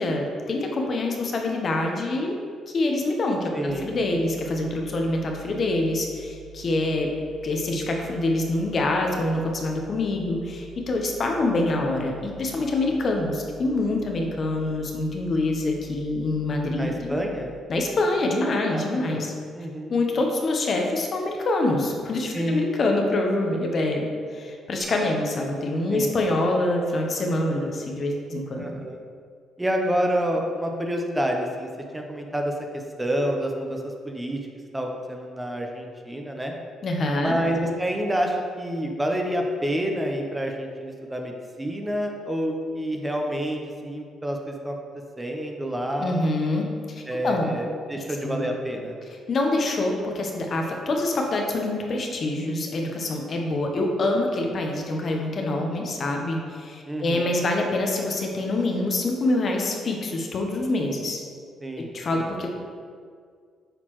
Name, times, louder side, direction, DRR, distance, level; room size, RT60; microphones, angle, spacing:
voice 1, 0.0-2.4 2.7-7.1 7.4-17.2 17.7-19.3 19.9-24.1 24.3-28.7 36.8-37.4 46.0-47.5 48.0-48.4 49.3-61.2 61.9-62.5, left 2 dB, 50° left, 1 dB, 0.9 m, -25 dB
voice 2, 3.5-3.9 16.8-17.6 18.7-19.2 19.5-20.0 22.3-22.7 25.9-26.1 28.6-29.0 29.6-34.4 34.7-36.5 37.2-44.8 45.2-46.2 47.1-48.9 56.9-57.3 61.6-62.3, equal, 15° right, 2 dB, 0.8 m, -28 dB
sound 1, 3.7-17.6, right 6 dB, 70° right, 0.4 m, -46 dB
sound 2, 24.8-26.2, right 2 dB, 35° right, 1.0 m, -45 dB
7.7 x 4.2 x 3.1 m, 2.1 s
supercardioid pair, 70°, 0 cm